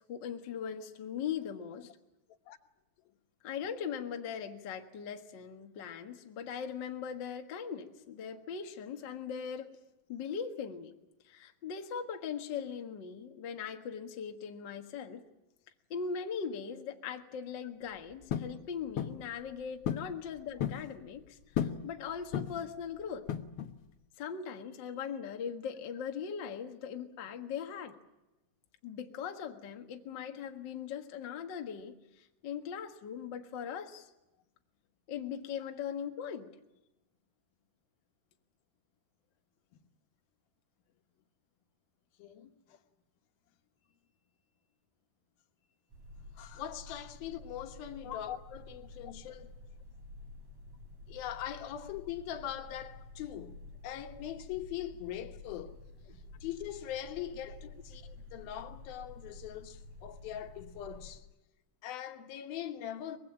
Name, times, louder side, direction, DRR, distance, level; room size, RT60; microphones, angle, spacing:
voice 1, 0.0-1.9 3.4-9.8 10.1-10.9 11.2-15.2 15.9-23.3 24.2-28.0 28.8-34.1 35.1-36.5 48.0-48.2, left 7 dB, 45° left, 1.5 m, -40 dB
sound 1, 18.3-18.6 19.0-19.2 19.9-20.1 20.4-20.9 21.6-21.9 22.3-22.7 23.3-23.8, left 9 dB, 65° left, 1.5 m, -34 dB
voice 2, 42.2-42.8 46.3-49.6 51.1-55.8 56.1-61.3 61.8-63.2, left 11 dB, 80° left, 3.1 m, -42 dB
sound 2, 45.9-61.2, left 2 dB, 45° right, 5.1 m, -51 dB
24.0 x 21.0 x 8.9 m
omnidirectional pair, 4.2 m